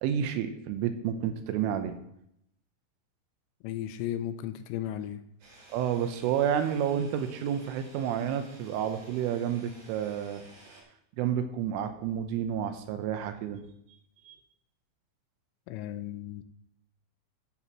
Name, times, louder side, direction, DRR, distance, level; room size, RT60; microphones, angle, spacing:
voice 1, 0.0-2.0 5.7-10.4 11.2-13.6 14.3-14.4, right 9 dB, 80° right, 8 dB, 3.3 m, -30 dB
voice 2, 3.6-5.2 15.7-16.4, left 11 dB, 85° left, 10 dB, 3.1 m, -35 dB
sound 1, 5.4-10.8, right 2 dB, 40° right, 5.4 m, -54 dB
13.0 x 11.0 x 3.0 m, 0.76 s
omnidirectional pair, 5.9 m